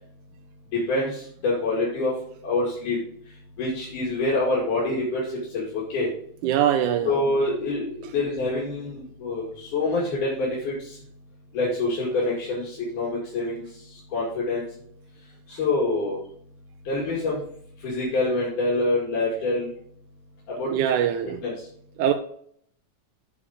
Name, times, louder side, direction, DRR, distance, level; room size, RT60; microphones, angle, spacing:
voice 1, 0.9-2.1 2.4-3.0 3.6-5.2 5.5-6.1 7.0-10.7 11.5-13.6 14.1-14.6 15.5-16.2 16.9-17.4 17.8-19.7 20.6-20.7 21.4-21.5, left 2 dB, 80° left, -6 dB, 3.7 m, -26 dB
voice 2, 6.4-7.2 20.7-21.4 22.0-22.1, right 10 dB, 80° right, 6 dB, 2.1 m, -22 dB
8.5 x 5.0 x 5.0 m, 0.62 s
omnidirectional pair, 3.6 m